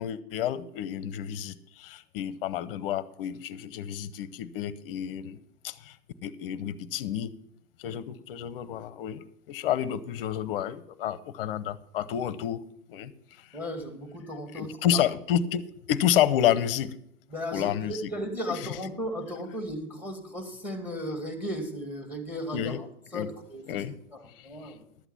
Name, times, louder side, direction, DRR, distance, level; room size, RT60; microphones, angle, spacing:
voice 1, 0.0-5.4 5.6-6.0 6.2-7.3 7.8-12.6 12.9-13.1 14.5-17.0 17.5-18.0 22.5-22.8 23.1-23.3 23.7-23.9 24.4-24.5, left 10 dB, 40° left, 17 dB, 0.8 m, -29 dB
voice 2, 13.5-15.0 17.3-22.9 23.1-23.8 24.1-24.8, equal, 5° right, 6 dB, 2.1 m, -36 dB
12.0 x 8.0 x 5.7 m, 0.72 s
hypercardioid pair, 125°, 44 cm